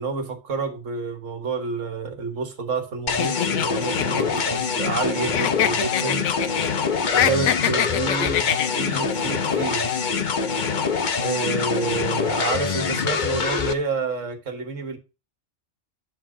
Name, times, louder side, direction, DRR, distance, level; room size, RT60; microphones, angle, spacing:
voice 1, 0.0-6.2 7.1-9.9 11.2-15.0, right 4 dB, 90° right, 1.8 m, -29 dB
sound 1, 3.1-13.7, left 5 dB, 45° left, 0.8 m, -25 dB
sound 2, 3.2-5.1 5.3-6.7 7.0-9.0, left 10 dB, 75° left, 1.0 m, -24 dB
11.0 x 4.8 x 3.8 m
omnidirectional pair, 1.3 m